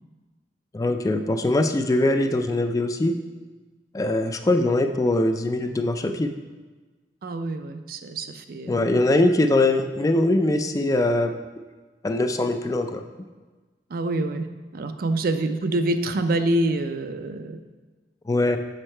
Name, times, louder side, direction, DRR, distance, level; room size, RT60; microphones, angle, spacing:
voice 1, 0.7-3.1 3.9-6.3 8.7-11.3 12.0-13.0 18.3-18.6, left 2 dB, 20° left, 7 dB, 0.3 m, -22 dB
voice 2, 7.2-8.9 13.9-14.5 14.7-17.6, right 2 dB, 55° right, 9 dB, 0.4 m, -26 dB
6.5 x 5.3 x 4.3 m, 1.3 s
head